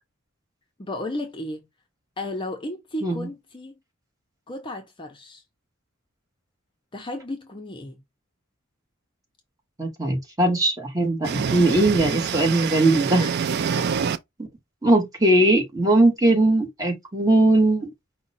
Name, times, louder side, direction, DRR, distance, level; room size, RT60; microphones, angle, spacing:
voice 1, 0.8-1.7 2.2-3.7 4.5-5.4 6.9-8.0 13.2-13.3 13.8-13.9, left 1 dB, 25° left, 0.6 m, -33 dB
voice 2, 9.8-13.2 14.8-17.9, right 2 dB, 20° right, 1.3 m, -20 dB
sound 1, 11.2-14.2, right 6 dB, 55° right, 0.4 m, -26 dB
4.9 x 2.2 x 4.0 m
head